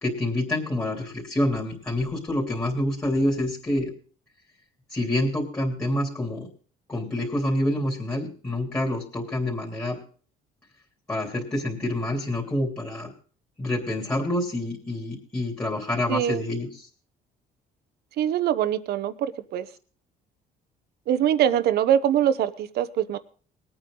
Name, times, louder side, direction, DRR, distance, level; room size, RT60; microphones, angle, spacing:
voice 1, 0.0-3.9 4.9-6.5 6.9-10.0 11.1-13.1 13.6-16.9, left 1 dB, 15° left, -2 dB, 3.2 m, -27 dB
voice 2, 16.1-16.4 18.2-19.7 21.1-23.2, right 10 dB, 70° right, 13 dB, 1.1 m, -23 dB
20.5 x 8.9 x 3.9 m, 0.42 s
cardioid pair, 110°, 17 cm